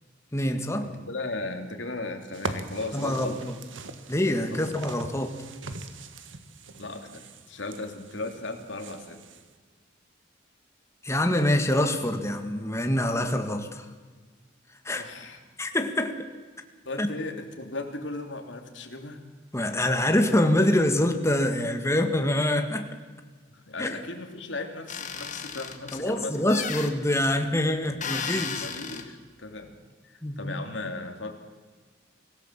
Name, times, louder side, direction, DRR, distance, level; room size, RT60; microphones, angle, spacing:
voice 1, 0.3-0.9 2.9-3.5 4.1-5.3 11.0-13.9 14.9-15.0 15.6-16.2 17.0-17.1 19.5-22.9 23.8-24.0 25.9-28.7 30.2-30.5, left 1 dB, 15° left, 6 dB, 1.9 m, -25 dB
voice 2, 0.8-3.5 4.5-4.7 6.8-9.2 14.9-15.4 16.8-19.2 23.5-26.6 27.8-28.0 28.6-29.7 30.0-31.3, left 2 dB, 70° left, 5 dB, 3.0 m, -37 dB
sound 1, 2.3-9.5, right 3 dB, 85° right, 1.7 m, -41 dB
sound 2, 24.9-26.0 26.5-26.9 28.0-29.0, left 6 dB, 40° left, 2.0 m, -34 dB
25.0 x 16.5 x 7.5 m, 1.5 s
head